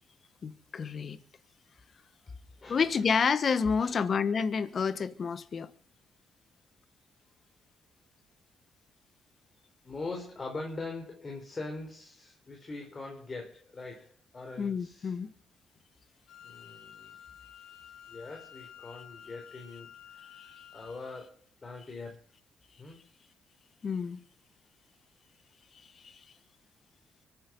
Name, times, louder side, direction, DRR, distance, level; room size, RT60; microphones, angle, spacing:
voice 1, 0.4-1.2 2.7-5.7 14.6-15.3 23.8-24.2 26.0-26.1, left 6 dB, 45° left, 1.3 m, -29 dB
voice 2, 2.6-3.1 3.8-4.0 9.8-15.1 16.4-17.2 18.1-22.2 22.8-23.0, left 3 dB, 30° left, 4.1 m, -42 dB
Wind instrument woodwind instrument, 16.3-21.1, left 9 dB, 75° left, 2.4 m, -51 dB
24.0 x 9.7 x 5.4 m
cardioid pair, 90°, 0 cm